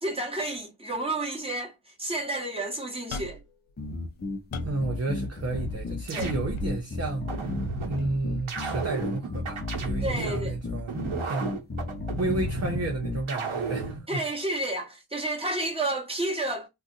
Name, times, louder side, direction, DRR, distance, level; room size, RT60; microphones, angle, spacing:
voice 1, 0.0-3.4 6.1-6.3 10.0-10.5 14.1-16.7, right 1 dB, 10° right, 1.1 m, -31 dB
sound 1, 3.1-3.5 4.1-4.9 6.2-6.8 8.0-8.1, left 4 dB, 85° left, 0.6 m, -39 dB
sound 2, 3.8-13.2, left 2 dB, 25° left, 0.4 m, -34 dB
voice 2, 4.6-7.3 7.8-10.9 11.2-11.6 12.2-14.2, right 2 dB, 35° right, 0.6 m, -31 dB
sound 3, 5.5-6.8 7.3-8.0 8.5-10.4 10.9-12.8 13.3-14.0, right 3 dB, 90° right, 1.0 m, -33 dB
2.5 x 2.3 x 3.8 m
wide cardioid pair, 90°, 48 cm